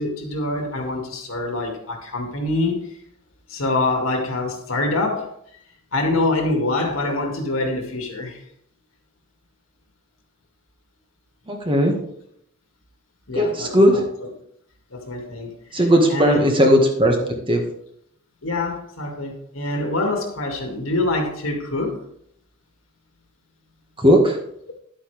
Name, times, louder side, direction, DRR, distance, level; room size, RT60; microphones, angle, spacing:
voice 1, 0.0-3.0 3.5-5.3 5.9-8.4 13.3-14.3 14.9-16.5 18.4-22.0, left 2 dB, 80° left, 2 dB, 2.2 m, -25 dB
voice 2, 11.5-11.9 13.3-13.9 15.7-17.1 17.5-17.6 24.0-24.4, equal, 25° right, 2 dB, 1.7 m, -16 dB
11.5 x 8.5 x 3.4 m, 0.70 s
head